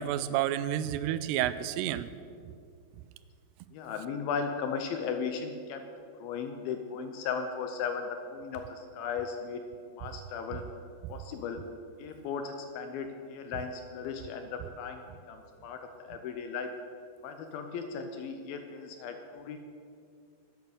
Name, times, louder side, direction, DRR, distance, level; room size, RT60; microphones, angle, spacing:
voice 1, 0.0-2.1, right 11 dB, 85° right, 14 dB, 2.6 m, -30 dB
voice 2, 3.7-5.9 6.2-9.6 9.9-10.7 11.1-11.7 12.0-15.0 15.3-16.7 17.2-19.6, left 6 dB, 80° left, 6 dB, 2.3 m, -36 dB
10.5 x 9.5 x 7.1 m, 2.3 s
omnidirectional pair, 4.8 m